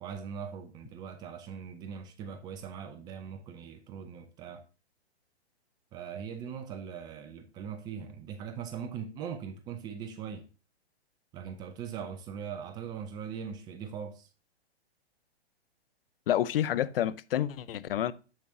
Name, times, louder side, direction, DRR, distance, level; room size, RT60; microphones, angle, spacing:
voice 1, 0.0-4.6 5.9-10.5 11.3-14.3, right 7 dB, 15° right, 0.4 m, -40 dB
voice 2, 16.3-18.1, left 11 dB, 60° left, 0.6 m, -29 dB
7.5 x 7.2 x 2.6 m
hypercardioid pair, 125°, 33 cm